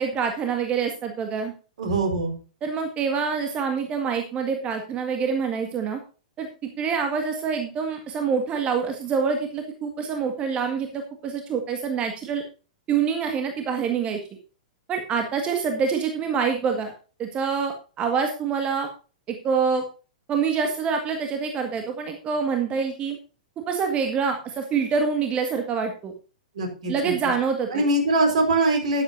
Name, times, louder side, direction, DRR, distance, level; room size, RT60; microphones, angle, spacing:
voice 1, 0.0-1.5 2.6-6.0 6.4-12.4 12.9-14.2 14.9-16.9 17.2-18.9 19.3-19.8 20.3-23.2 23.7-26.1 26.9-27.8, right 6 dB, 25° right, 5 dB, 1.8 m, -26 dB
voice 2, 1.8-2.3 26.5-27.1 27.7-29.0, right 2 dB, 60° right, 4 dB, 4.5 m, -22 dB
13.0 x 11.0 x 2.7 m, 0.36 s
figure-of-eight pair, 105°, 4 cm